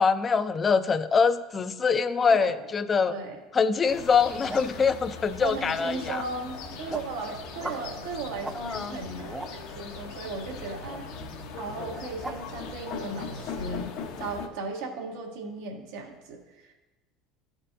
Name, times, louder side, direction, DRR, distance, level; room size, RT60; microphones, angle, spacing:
voice 1, 0.0-3.1 3.5-6.2 8.6-9.0, left 5 dB, 30° left, 12 dB, 0.4 m, -24 dB
voice 2, 2.3-2.7 3.1-3.4 5.4-11.1 11.5-16.7, right 3 dB, 75° right, 0 dB, 1.3 m, -37 dB
sound 1, 3.9-14.5, left 4 dB, 65° left, 0.8 m, -39 dB
sound 2, 4.2-4.8 5.5-6.2 6.6-7.1 7.6-7.9 8.4-8.6 9.0-9.5 10.9-11.0 11.9-12.4, right 2 dB, 10° right, 0.6 m, -39 dB
13.5 x 4.4 x 2.6 m, 1.1 s
hypercardioid pair, 90°, 0 cm